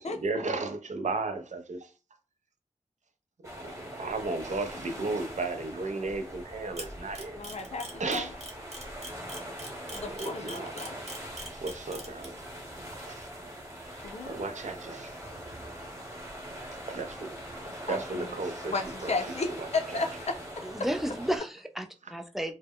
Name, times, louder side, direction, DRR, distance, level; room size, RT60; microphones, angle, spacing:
voice 1, 0.0-1.9 3.6-7.4 8.0-8.3 9.9-10.9 11.6-12.4 13.1-13.3 14.3-15.2 16.9-17.3 17.7-18.7 19.0-19.7 19.9-20.0, right 3 dB, 75° right, 0.4 m, -34 dB
sound 1, 3.4-21.4, equal, 25° right, 1.0 m, -42 dB
Camera, 6.8-12.2, right 2 dB, 55° right, 0.8 m, -41 dB
voice 2, 7.3-8.3 9.9-11.0 14.0-14.4 17.9-18.3 18.7-20.6, left 3 dB, 60° left, 0.5 m, -34 dB
voice 3, 20.6-22.5, right 1 dB, ahead, 0.4 m, -33 dB
2.1 x 2.0 x 3.5 m
wide cardioid pair, 60°, 13 cm